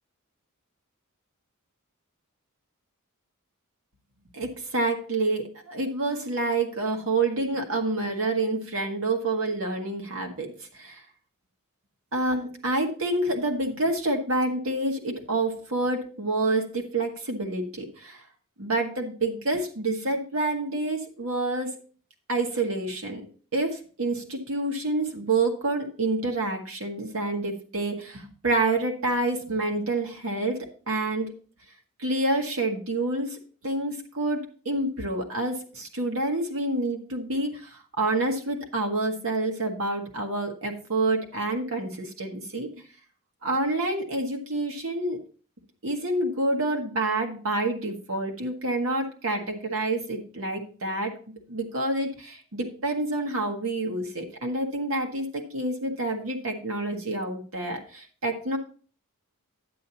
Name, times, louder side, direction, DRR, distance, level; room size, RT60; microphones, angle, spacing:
voice 1, 4.3-11.0 12.1-18.2 18.6-21.8 22.3-23.2 23.5-31.3 32.0-33.4 33.6-42.7 43.4-45.2 45.8-51.1 51.5-58.6, right 2 dB, 65° right, 2 dB, 1.7 m, -28 dB
10.0 x 8.4 x 2.9 m, 0.40 s
head